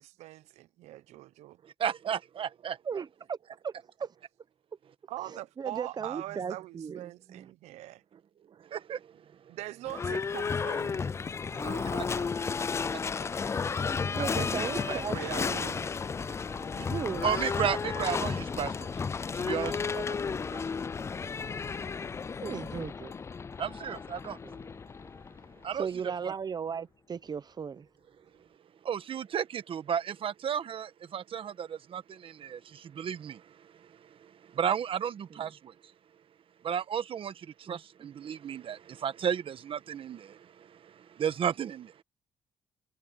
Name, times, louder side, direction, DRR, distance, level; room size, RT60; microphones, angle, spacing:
voice 1, 0.0-1.6 5.1-8.0 9.5-11.1 11.6-12.3 14.2-15.8, right 15 dB, 85° right, 0.9 m, -42 dB
voice 2, 1.6-2.8 8.6-9.1 11.5-11.6 12.7-13.0 16.2-16.9 17.2-18.9 19.3-20.6 23.6-24.4 25.6-25.9 26.2-26.3 28.8-33.4 33.8-33.9 34.2-35.7 36.6-42.0, right 8 dB, 55° right, 1.3 m, -34 dB
voice 3, 2.8-3.4 3.6-3.7 4.0-4.1 5.3-7.0 14.0-15.2 15.4-15.8 16.7-17.2 22.4-23.1 24.4-24.6 25.8-27.9 35.3-35.5 37.7-38.1, right 6 dB, 40° right, 0.9 m, -36 dB
Livestock farm animals working animals / Bell, 9.9-25.7, left 5 dB, 25° left, 0.3 m, -33 dB
cardioid pair, 90°, 11 cm